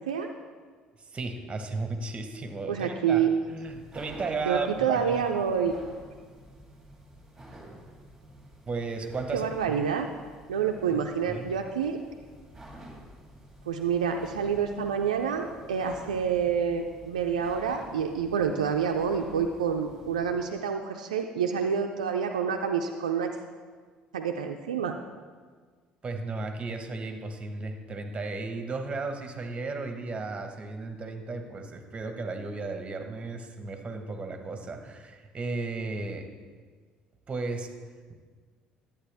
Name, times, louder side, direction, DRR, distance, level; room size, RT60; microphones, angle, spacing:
voice 1, 1.1-5.2 7.7-7.8 8.7-9.8 10.9-11.0 11.3-11.5 26.0-36.3 37.3-37.7, right 3 dB, 30° right, 6 dB, 1.2 m, -34 dB
voice 2, 2.7-3.3 4.5-5.8 9.3-10.1 10.5-12.0 13.7-23.3 24.1-25.0, right 7 dB, 90° right, 3 dB, 0.4 m, -28 dB
sound 1, 3.3-20.5, right 1 dB, 5° right, 2.9 m, -50 dB
11.0 x 8.6 x 3.4 m, 1.6 s
hypercardioid pair, 60°, 4 cm